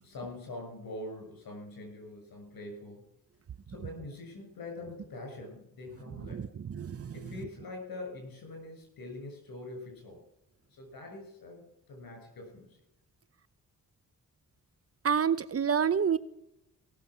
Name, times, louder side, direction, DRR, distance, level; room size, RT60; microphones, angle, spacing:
voice 1, 0.0-3.0 3.7-6.5 7.1-10.2 10.7-12.8, left 2 dB, 80° left, 2 dB, 6.5 m, -44 dB
voice 2, 6.1-7.3 15.0-16.2, right 7 dB, 45° right, 17 dB, 0.7 m, -29 dB
17.5 x 7.2 x 6.0 m, 0.82 s
cardioid pair, 70°, 35 cm